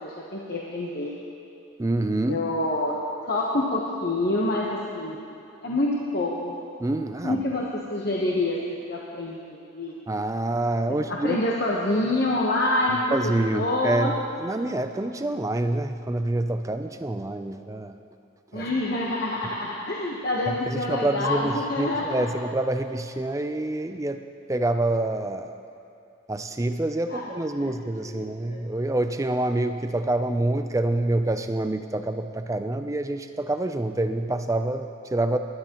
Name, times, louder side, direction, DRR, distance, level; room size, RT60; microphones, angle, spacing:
voice 1, 0.0-1.1 2.3-3.0 3.2-4.7 4.9-5.2 5.6-6.5 7.2-8.6 8.9-9.4 9.7-10.0 11.1-13.1 13.5-14.1 18.5-22.2 27.1-27.2 27.6-27.7 28.0-28.2 28.5-28.7, left 2 dB, 50° left, -4 dB, 1.0 m, -26 dB
voice 2, 1.8-2.4 6.8-7.4 10.1-11.4 13.1-18.0 18.5-18.7 20.5-24.2 24.5-25.5 26.3-35.4, right 2 dB, 15° right, 8 dB, 0.4 m, -27 dB
18.0 x 11.5 x 3.0 m, 2.8 s
head